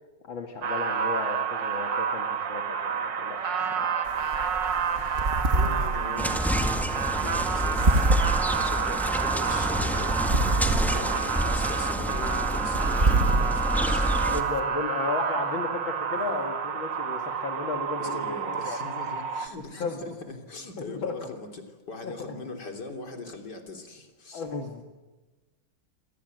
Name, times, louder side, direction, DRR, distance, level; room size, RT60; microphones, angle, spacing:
voice 1, 0.2-3.4 3.8-3.9 10.9-11.1 14.3-18.8 19.8-20.1 20.9-21.3 22.0-22.4 24.3-24.8, left 4 dB, 70° left, 3 dB, 2.9 m, -34 dB
sound 1, 0.6-19.5, right 6 dB, 60° right, 2.2 m, -29 dB
sound 2, 4.0-14.6, right 2 dB, 30° right, 1.9 m, -28 dB
voice 2, 4.7-10.2 10.6-14.3 16.1-16.5 18.0-24.5, left 3 dB, 50° left, 5 dB, 4.1 m, -41 dB
sound 3, 6.2-14.4, equal, ahead, 1.7 m, -29 dB
27.0 x 27.0 x 7.9 m, 1.2 s
omnidirectional pair, 2.3 m